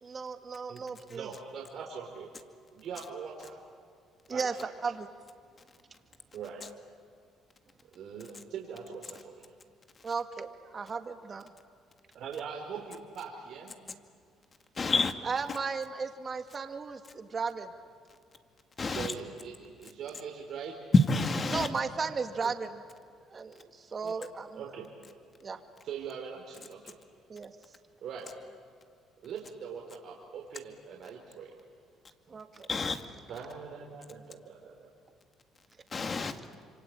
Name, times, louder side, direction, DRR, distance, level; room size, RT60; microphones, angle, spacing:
voice 1, 0.0-1.3 4.3-4.5 4.8-5.1 10.0-11.5 15.2-17.7 21.5-22.7 23.3-24.7 25.4-25.6 27.3-27.5 32.3-32.7, right 5 dB, 35° right, 2.1 m, -35 dB
voice 2, 1.1-2.3 2.7-3.6 4.3-4.7 6.3-6.6 7.9-9.5 12.1-13.7 18.9-20.8 22.4-22.5 24.0-24.2 24.5-24.9 25.8-26.9 28.0-28.3 29.2-31.6 33.3-34.9, right 6 dB, 65° right, 3.9 m, -42 dB
voice 3, 14.8-15.1 18.8-19.1 20.9-21.7 32.7-33.0 35.9-36.3, left 3 dB, 35° left, 2.2 m, -26 dB
26.5 x 25.0 x 8.9 m
supercardioid pair, 85°, 0 cm